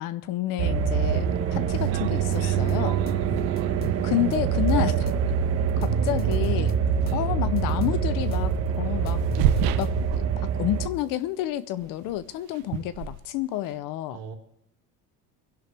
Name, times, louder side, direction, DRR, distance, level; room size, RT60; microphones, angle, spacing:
voice 1, 0.0-3.0 4.0-5.1 5.8-6.7 7.1-9.2 9.8-14.2, left 14 dB, 60° left, 0.8 m, -30 dB
sound 1, 0.6-10.9, right 7 dB, 40° right, 1.3 m, -25 dB
sound 2, 1.3-1.4 1.8-3.8 4.9-5.0 6.8-7.0 7.4-7.5 9.0-10.9 11.1-11.4 11.8-13.8, right 11 dB, 65° right, 0.9 m, -32 dB
sound 3, 2.3-2.7 3.1-4.7 5.1-6.7 7.1-8.6 8.8-10.3, left 6 dB, 25° left, 0.6 m, -39 dB
voice 2, 3.1-3.8 7.0-7.4 14.1-14.3, right 7 dB, 85° right, 2.6 m, -42 dB
24.0 x 11.0 x 3.4 m
cardioid pair, 165°, 37 cm